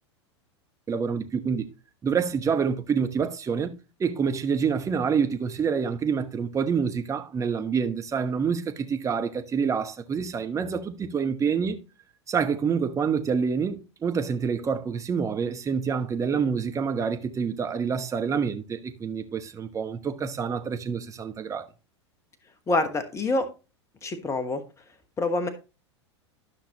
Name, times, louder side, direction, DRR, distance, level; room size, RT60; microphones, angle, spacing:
voice 1, 0.9-1.7 2.0-3.7 4.0-11.8 12.3-21.7, right 6 dB, 20° right, 1.1 m, -27 dB
voice 2, 22.7-23.5 24.0-24.6 25.2-25.5, left 2 dB, 20° left, 1.2 m, -26 dB
13.0 x 5.9 x 2.9 m
figure-of-eight pair, 95°, 15 cm